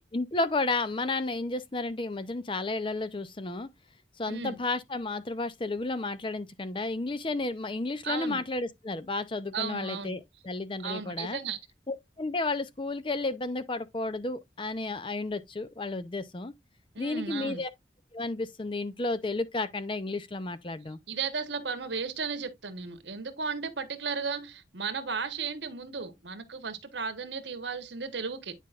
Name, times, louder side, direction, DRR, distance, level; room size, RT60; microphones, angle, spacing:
voice 1, 0.1-3.7 4.2-11.4 11.9-16.5 17.0-17.7 18.1-21.0, left 2 dB, 30° left, 0.6 m, -32 dB
voice 2, 4.3-4.6 8.0-8.4 9.5-10.2 10.8-11.6 16.9-17.6 21.1-28.5, right 5 dB, 75° right, 1.2 m, -35 dB
9.5 x 5.1 x 2.5 m
head